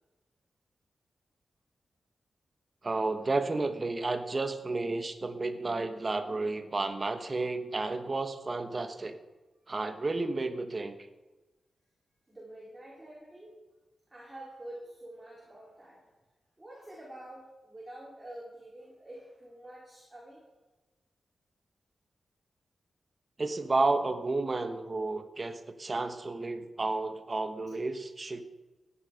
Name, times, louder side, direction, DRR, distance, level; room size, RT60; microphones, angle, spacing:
voice 1, 2.8-9.2 9.7-11.0 23.4-28.4, right 3 dB, 35° right, 8 dB, 1.2 m, -31 dB
voice 2, 12.3-13.6 14.1-16.0 16.6-20.4, right 1 dB, 15° right, -6 dB, 4.2 m, -47 dB
16.0 x 9.9 x 5.2 m, 1.2 s
wide cardioid pair, 100°, 0 cm